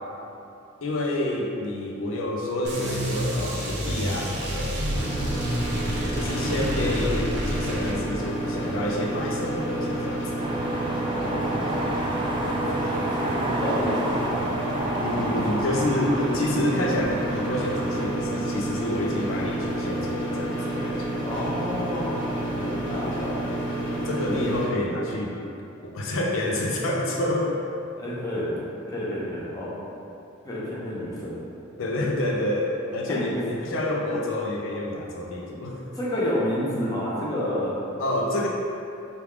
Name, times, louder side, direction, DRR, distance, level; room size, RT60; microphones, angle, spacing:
voice 1, 0.8-4.8 6.1-10.4 15.0-21.2 24.1-25.4 25.8-27.6 31.8-35.8 38.0-38.5, left 1 dB, 85° left, -1 dB, 0.5 m, -28 dB
sound 1, 2.6-8.0, equal, 60° right, 0.7 m, -29 dB
sound 2, 4.9-24.7, right 1 dB, 65° left, 1.1 m, -30 dB
voice 2, 6.2-6.7 11.0-11.8 12.7-12.9 13.2-14.4 15.3-15.6 21.2-23.4 28.0-28.6 28.9-29.7 30.4-31.4 33.1-33.4 35.9-37.7, left 1 dB, 20° left, -8 dB, 0.8 m, -30 dB
sound 3, 10.4-18.1, right 1 dB, 25° right, 0.4 m, -31 dB
4.9 x 2.4 x 3.4 m, 2.8 s
head